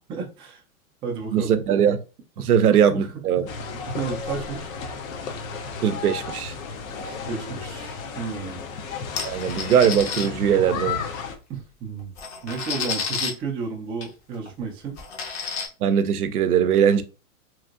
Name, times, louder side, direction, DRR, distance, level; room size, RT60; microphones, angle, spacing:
voice 1, 0.1-0.6 1.0-1.5 2.4-2.5 2.9-3.5 3.9-4.7 7.0-8.7 11.5-12.1 12.4-15.0, right 5 dB, 15° right, 0.3 m, -32 dB
voice 2, 1.3-2.0 2.4-3.4 5.8-6.5 9.2-11.0 15.8-17.0, right 8 dB, 90° right, 0.6 m, -20 dB
sound 1, 3.5-11.4, left 5 dB, 65° left, 0.8 m, -33 dB
sound 2, 9.2-10.3 11.5-11.6 12.0-13.3 14.0-14.1 14.5-14.6 15.0-15.7, left 6 dB, 30° left, 0.7 m, -30 dB
3.0 x 2.5 x 2.4 m
hypercardioid pair, 120°, 43 cm